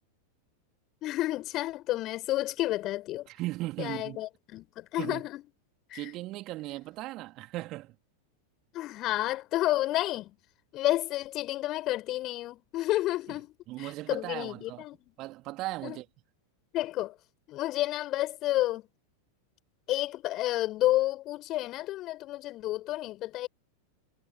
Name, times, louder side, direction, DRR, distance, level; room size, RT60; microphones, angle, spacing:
voice 1, 1.0-3.3 3.8-5.4 5.9-6.1 8.7-10.4 10.7-13.5 13.8-15.0 15.8-16.0 16.7-17.1 17.5-18.8 19.9-23.5, left 16 dB, 35° left, 5.1 m, -30 dB
voice 2, 3.3-4.2 5.0-5.2 5.9-7.9 13.7-14.8 15.2-16.0, right 18 dB, 40° right, 3.3 m, -37 dB
figure-of-eight pair, 90°, 0 cm